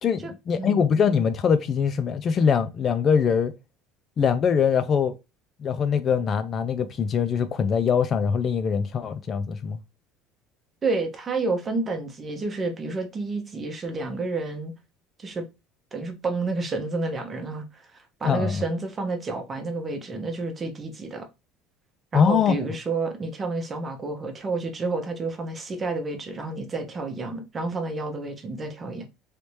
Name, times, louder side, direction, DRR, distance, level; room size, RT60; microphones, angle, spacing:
voice 1, 0.0-3.5 4.2-5.1 5.6-9.8 18.2-18.6 22.1-22.5, left 6 dB, 35° left, 0.4 m, -23 dB
voice 2, 10.8-14.7 15.2-15.4 15.9-21.3 22.1-29.0, right 3 dB, 25° right, 0.8 m, -30 dB
3.3 x 2.7 x 3.1 m
cardioid pair, 145°, 0 cm